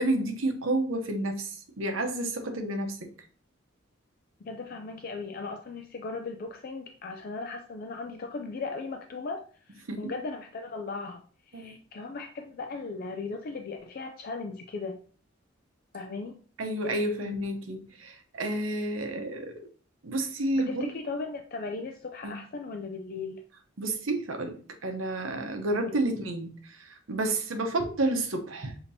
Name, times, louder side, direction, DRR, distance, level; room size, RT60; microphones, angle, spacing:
voice 1, 0.0-3.1 9.9-10.1 11.5-11.8 16.6-19.6 20.0-20.9 22.2-22.4 23.8-28.8, right 1 dB, 85° right, 5 dB, 0.8 m, -30 dB
voice 2, 4.4-9.4 9.7-15.0 15.9-16.4 19.2-19.3 20.5-23.4, left 3 dB, 50° left, 4 dB, 0.4 m, -37 dB
6.8 x 2.8 x 2.7 m, 0.43 s
head